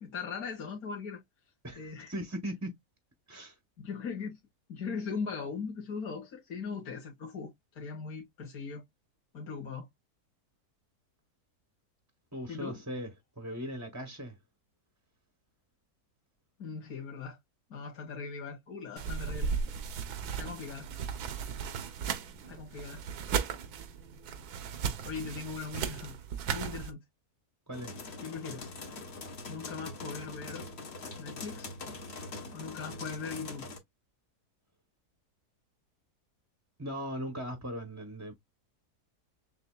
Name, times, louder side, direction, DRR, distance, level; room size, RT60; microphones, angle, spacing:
voice 1, 0.0-1.2 1.7-2.1 3.8-4.4 4.7-8.8 9.3-9.9 12.5-12.8 16.6-17.4 17.7-19.5 20.4-20.9 22.5-23.0 25.0-26.2 26.5-27.0 28.2-28.7 29.5-30.7 31.2-31.7 32.5-33.7, left 5 dB, 70° left, 1.8 m, -39 dB
voice 2, 1.6-2.8 3.3-3.6 12.3-14.4 27.7-27.9 36.8-38.3, equal, 15° right, 0.7 m, -39 dB
sound 1, 19.0-26.9, right 7 dB, 80° right, 1.3 m, -36 dB
sound 2, 27.7-33.8, left 3 dB, 45° left, 1.2 m, -43 dB
6.8 x 2.6 x 2.2 m
omnidirectional pair, 1.6 m